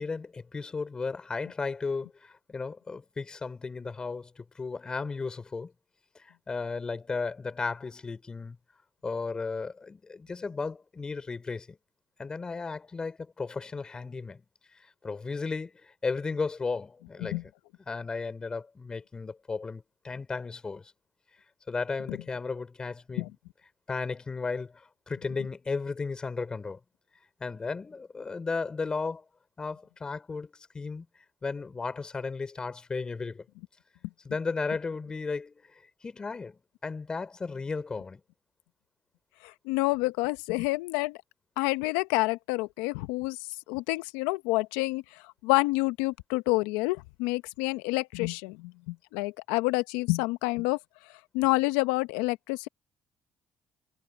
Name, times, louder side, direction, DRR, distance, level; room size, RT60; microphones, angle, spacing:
voice 1, 0.0-5.7 6.1-8.6 9.0-11.8 12.2-14.4 14.8-17.4 17.9-20.9 21.7-23.3 23.9-26.8 27.4-29.2 29.6-31.1 31.4-33.4 34.2-35.6 36.0-38.2, left 4 dB, 30° left, 4.3 m, -35 dB
voice 2, 39.4-41.2 41.6-43.4 43.7-50.8 51.3-52.7, left 22 dB, 85° left, 1.0 m, -28 dB
hypercardioid pair, 60°, 3 cm